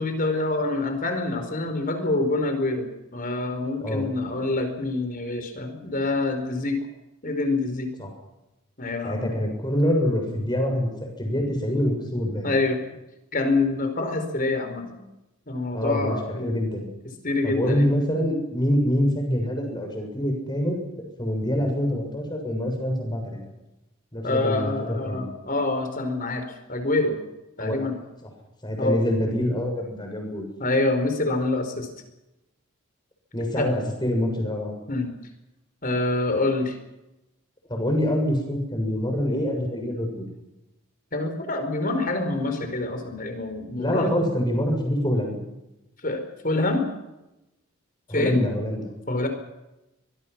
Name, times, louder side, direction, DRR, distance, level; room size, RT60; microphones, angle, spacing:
voice 1, 0.0-6.8 7.2-7.9 8.8-9.3 12.4-12.8 13.3-15.0 15.5-16.5 17.2-17.9 24.2-27.2 27.6-28.0 28.8-29.0 30.6-31.9 33.6-33.7 34.9-35.1 35.8-36.8 41.1-44.1 46.0-46.8 48.1-48.4 49.1-49.3, left 2 dB, 40° left, 7 dB, 4.7 m, -26 dB
voice 2, 9.0-12.5 15.7-16.8 17.4-23.4 24.1-25.3 27.6-27.8 28.2-28.3 28.6-30.5 33.3-34.7 37.7-40.3 43.8-45.4 48.1-48.8, equal, 20° left, 2 dB, 6.9 m, -25 dB
24.0 x 21.5 x 6.1 m, 0.94 s
head